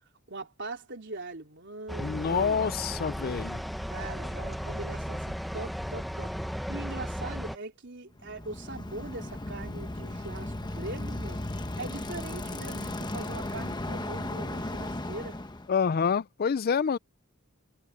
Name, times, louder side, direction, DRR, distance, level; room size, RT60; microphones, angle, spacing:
voice 1, 0.3-2.6 3.9-6.3 6.7-11.4 11.8-15.4, right 2 dB, 60° right, 3.7 m, -41 dB
sound 1, 1.9-7.6, equal, ahead, 0.8 m, -35 dB
voice 2, 2.0-3.6 15.7-17.0, left 6 dB, 45° left, 0.4 m, -27 dB
Bicycle, 8.2-15.7, left 1 dB, 20° left, 1.1 m, -36 dB
sound 2, 8.9-14.2, equal, 85° right, 6.9 m, -55 dB
head